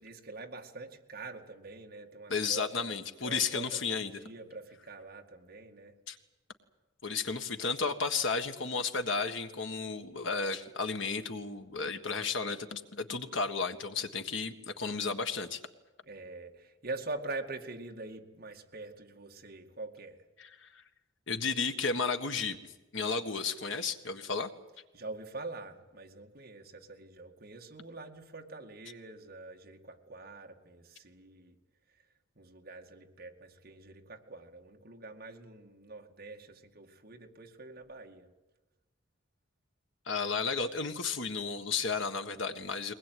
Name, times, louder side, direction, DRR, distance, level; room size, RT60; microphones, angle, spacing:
voice 1, 0.0-6.0 16.0-20.3 24.9-31.6 31.9-32.0 32.3-38.3, right 2 dB, 45° right, 2 dB, 2.2 m, -45 dB
voice 2, 2.3-4.1 6.1-6.2 7.0-15.6 20.6-20.7 21.3-24.5 40.1-42.9, left 4 dB, 70° left, 7 dB, 1.6 m, -33 dB
22.5 x 20.0 x 9.4 m, 1.1 s
head